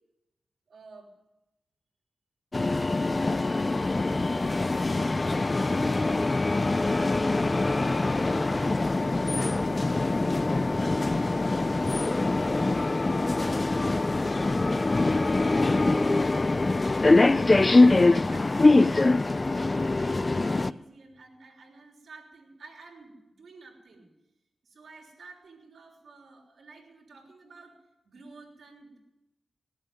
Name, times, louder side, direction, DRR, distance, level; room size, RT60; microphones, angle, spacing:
voice 1, 0.7-1.1 3.3-5.1 5.5-14.6 15.0-24.1 24.6-27.7 28.0-29.0, right 3 dB, 70° right, 2 dB, 3.4 m, -51 dB
sound 1, 2.5-20.7, left 2 dB, 35° left, 0.4 m, -23 dB
18.0 x 7.5 x 9.2 m, 0.95 s
cardioid pair, 55°, 0 cm